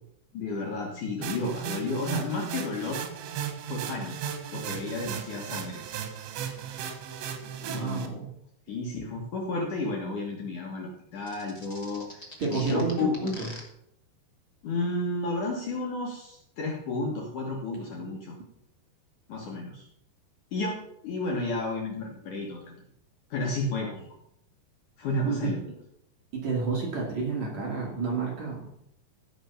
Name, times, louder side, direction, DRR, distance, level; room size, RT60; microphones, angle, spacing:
voice 1, 0.3-3.0 3.7-4.2 4.5-5.8 7.7-8.1 8.7-12.2 12.5-13.2 14.6-18.4 19.3-19.8 20.5-22.8 23.3-23.9 25.0-25.6, left 2 dB, 55° left, -1 dB, 2.5 m, -32 dB
sound 1, 1.2-8.1, right 8 dB, 85° right, 3.5 m, -36 dB
voice 2, 7.6-8.3 12.4-13.5 18.0-18.1 23.8-24.0 25.2-25.5 26.3-28.7, right 4 dB, 45° right, -2 dB, 3.3 m, -30 dB
sound 2, 11.3-13.6, left 1 dB, 75° left, 0.3 m, -43 dB
15.5 x 6.0 x 5.7 m, 0.74 s
omnidirectional pair, 5.0 m